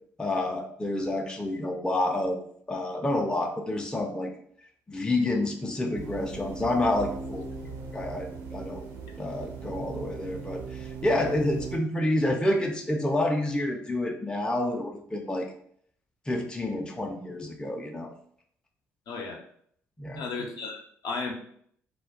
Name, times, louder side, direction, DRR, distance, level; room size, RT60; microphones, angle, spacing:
voice 1, 0.2-2.4 2.7-4.3 4.9-7.4 7.9-8.8 9.2-15.5 16.3-18.1 20.0-20.2, left 1 dB, 10° left, 2 dB, 0.4 m, -28 dB
sound 1, 5.9-11.8, right 5 dB, 70° right, 0.5 m, -39 dB
voice 2, 19.1-19.4 20.1-21.3, left 4 dB, 55° left, 1 dB, 0.6 m, -34 dB
2.2 x 2.1 x 3.6 m, 0.63 s
figure-of-eight pair, 45°, 8 cm